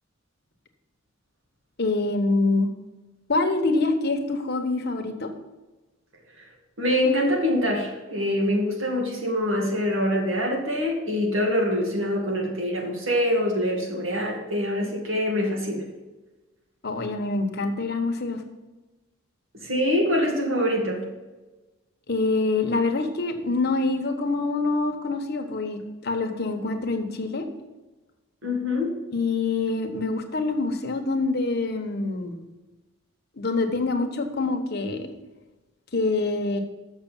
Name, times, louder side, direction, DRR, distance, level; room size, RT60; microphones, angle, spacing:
voice 1, 1.8-2.7 3.3-5.3 16.8-18.4 22.1-27.5 29.1-32.4 33.4-35.1 35.9-36.6, left 3 dB, 50° left, 4 dB, 1.1 m, -25 dB
voice 2, 6.8-15.8 19.6-21.0 28.4-28.9, left 1 dB, 65° right, 0 dB, 2.2 m, -24 dB
7.2 x 6.3 x 7.1 m, 1.2 s
head